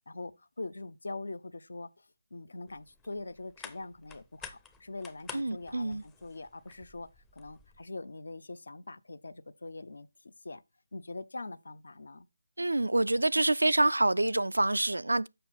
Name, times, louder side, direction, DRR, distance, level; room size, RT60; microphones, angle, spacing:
voice 1, 0.1-2.1 2.3-10.6 10.9-12.3, left 2 dB, 70° left, 0.7 m, -43 dB
sound 1, 2.7-7.8, left 6 dB, 10° left, 0.5 m, -50 dB
voice 2, 5.3-6.0 12.6-15.3, right 2 dB, 85° right, 0.3 m, -26 dB
6.9 x 5.5 x 4.0 m
figure-of-eight pair, 160°, 0 cm